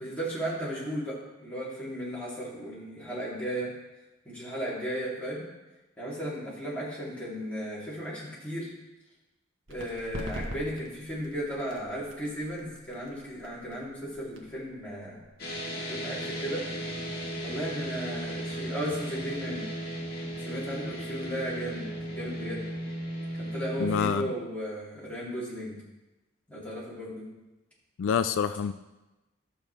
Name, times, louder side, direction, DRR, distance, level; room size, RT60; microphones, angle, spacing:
voice 1, 0.0-3.7 4.2-5.4 6.0-8.7 9.7-15.2 15.9-16.7 17.4-19.7 20.4-21.9 22.2-22.7 23.4-25.8 26.5-27.3, equal, 5° left, -9 dB, 3.0 m, -35 dB
sound 1, 9.7-17.0, equal, 75° right, 1.4 m, -44 dB
sound 2, 15.4-24.1, right 1 dB, 55° left, 1.8 m, -36 dB
voice 2, 23.8-24.3 28.0-28.7, left 7 dB, 80° left, 12 dB, 0.3 m, -27 dB
12.5 x 6.9 x 3.4 m, 1.1 s
head